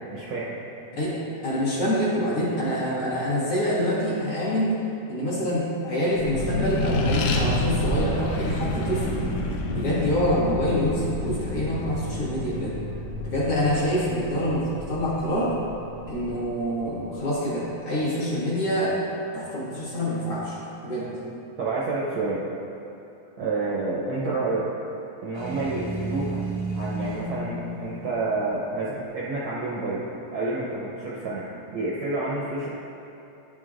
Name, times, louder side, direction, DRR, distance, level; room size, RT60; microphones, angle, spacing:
voice 1, 0.1-0.6 21.6-22.5 23.4-24.7 25.2-26.5 26.7-30.1 30.3-31.5 31.7-32.7, right 3 dB, 65° right, -7 dB, 1.3 m, -29 dB
voice 2, 1.0-4.8 5.1-9.2 9.7-12.8 13.2-15.6 16.0-19.0 19.3-21.1, equal, 50° left, -9 dB, 2.3 m, -26 dB
Accelerating revving vroom, 6.1-17.0, left 1 dB, 80° left, 1.9 m, -29 dB
sound 1, 25.3-29.3, right 2 dB, 25° left, 0.6 m, -33 dB
11.5 x 6.1 x 2.5 m, 2.8 s
omnidirectional pair, 3.3 m